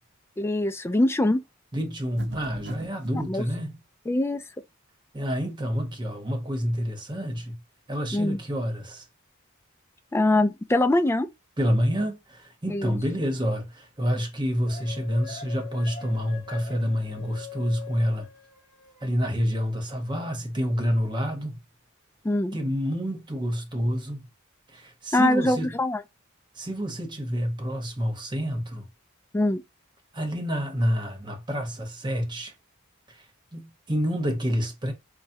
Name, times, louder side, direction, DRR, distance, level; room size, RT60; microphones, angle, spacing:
voice 1, 0.4-1.4 3.3-3.4 4.1-4.4 8.1-8.4 10.1-11.3 12.7-13.0 22.2-22.6 25.1-26.0 29.3-29.6, left 1 dB, 10° left, 0.3 m, -23 dB
voice 2, 1.7-3.8 5.1-7.6 7.9-9.0 11.6-18.3 19.0-21.6 22.5-24.3 24.7-25.8 26.6-28.9 30.1-32.5 33.5-34.9, equal, 20° right, 1.0 m, -28 dB
sound 1, 2.2-3.3, right 2 dB, 55° right, 0.6 m, -41 dB
sound 2, 14.7-19.2, left 8 dB, 40° left, 2.6 m, -43 dB
5.7 x 2.2 x 2.7 m
head